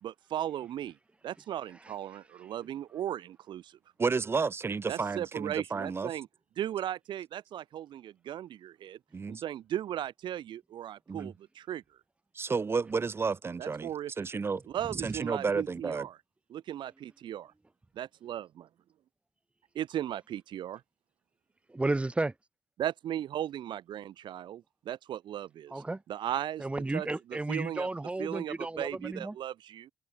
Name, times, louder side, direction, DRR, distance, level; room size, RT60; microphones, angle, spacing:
voice 1, 0.0-0.9 1.2-3.8 4.9-6.3 6.6-9.0 9.3-11.8 13.6-14.1 14.7-16.2 16.5-17.5 17.9-18.7 19.7-20.8 22.8-25.8 26.1-26.6 26.9-27.1 27.5-27.9 28.2-29.9, right 11 dB, 75° right, 2.9 m, -37 dB
voice 2, 4.0-6.1 9.1-9.4 11.1-11.3 12.3-13.9 14.2-14.6 15.0-16.1, right 4 dB, 30° right, 2.4 m, -31 dB
voice 3, 21.7-22.3 25.7-26.0 26.6-29.4, right 2 dB, 15° right, 5.2 m, -33 dB
open air
cardioid pair, 115°, 8 cm